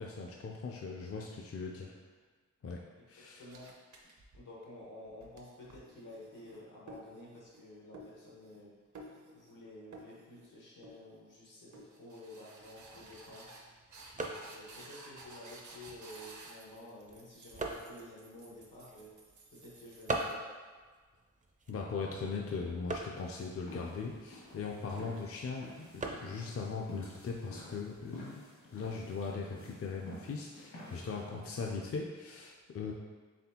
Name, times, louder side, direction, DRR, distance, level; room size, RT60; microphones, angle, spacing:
voice 1, 0.0-1.9 2.6-2.8 3.1-3.4 21.7-28.4 28.7-32.9, left 4 dB, 50° left, -1 dB, 0.4 m, -39 dB
voice 2, 3.4-3.7 4.3-8.7 9.3-13.5 14.1-19.1 19.5-20.5, left 1 dB, 85° left, -5 dB, 1.3 m, -51 dB
sound 1, 3.5-4.6 5.1-7.6 7.9-8.7 8.9-9.6 9.9-10.5 10.8-11.4 11.7-20.3, right 2 dB, 70° right, 0.7 m, -54 dB
sound 2, 12.7-28.2, right 2 dB, 25° right, 0.4 m, -45 dB
sound 3, 23.1-31.6, equal, 70° left, 1.3 m, -52 dB
4.2 x 3.5 x 2.8 m, 1.4 s
wide cardioid pair, 100°, 31 cm